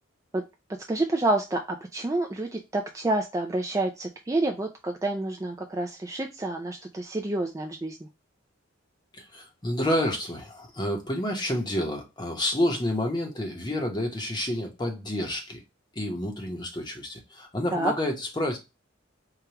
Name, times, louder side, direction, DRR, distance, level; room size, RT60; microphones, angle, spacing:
voice 1, 0.9-8.1 17.7-17.9, right 2 dB, 15° right, 0.3 m, -28 dB
voice 2, 9.1-15.6 15.9-18.6, left 1 dB, 20° left, 0.9 m, -29 dB
4.7 x 2.3 x 2.8 m
head